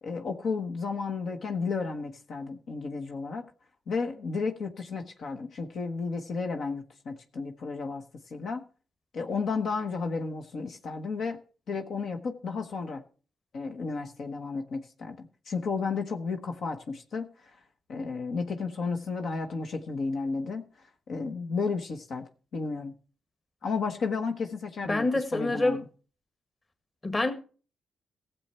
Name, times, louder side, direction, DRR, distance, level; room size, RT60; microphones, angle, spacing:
voice 1, 0.0-3.4 3.9-8.0 8.3-8.6 9.1-11.4 11.7-13.0 13.5-17.5 17.9-20.7 21.1-22.9 23.6-25.1 25.3-25.9, left 4 dB, 70° left, 1.2 m, -33 dB
voice 2, 24.9-25.8 27.0-27.3, left 2 dB, 30° left, 1.8 m, -26 dB
15.5 x 7.2 x 4.3 m
supercardioid pair, 55°, 0 cm